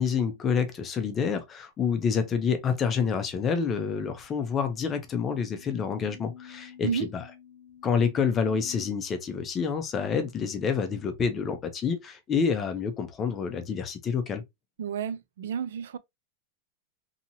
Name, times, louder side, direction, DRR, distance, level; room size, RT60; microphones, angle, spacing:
voice 1, 0.0-7.2 7.8-14.4, left 6 dB, 20° left, 0.5 m, -28 dB
sound 1, 4.5-8.9, left 8 dB, 85° left, 0.8 m, -50 dB
voice 2, 14.8-16.0, right 7 dB, 90° right, 0.4 m, -31 dB
2.8 x 2.7 x 2.6 m
supercardioid pair, 165°, 0 cm